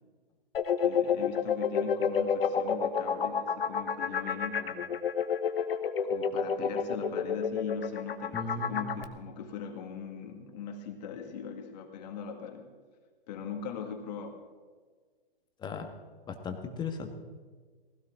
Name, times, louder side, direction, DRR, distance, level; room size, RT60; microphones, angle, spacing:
sound 1, 0.5-9.0, left 6 dB, 70° left, 1.1 m, -29 dB
voice 1, 0.8-4.9 6.0-12.7 13.3-14.4, left 6 dB, 45° left, 4 dB, 2.2 m, -40 dB
voice 2, 8.3-9.0 15.6-15.9 16.3-17.2, left 4 dB, 15° left, 5 dB, 1.5 m, -37 dB
18.5 x 16.5 x 3.8 m, 1.5 s
hypercardioid pair, 125°, 30 cm